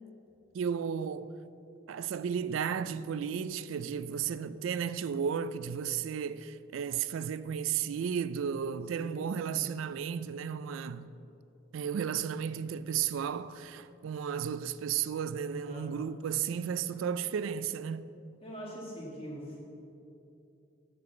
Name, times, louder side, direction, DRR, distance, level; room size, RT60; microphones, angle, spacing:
voice 1, 0.5-1.4 1.9-11.1 11.7-18.1, right 7 dB, 90° right, 0.3 m, -34 dB
voice 2, 4.1-4.6 8.9-9.7 15.6-16.1 18.4-19.6, equal, 30° left, 2.0 m, -44 dB
8.2 x 6.8 x 6.8 m
head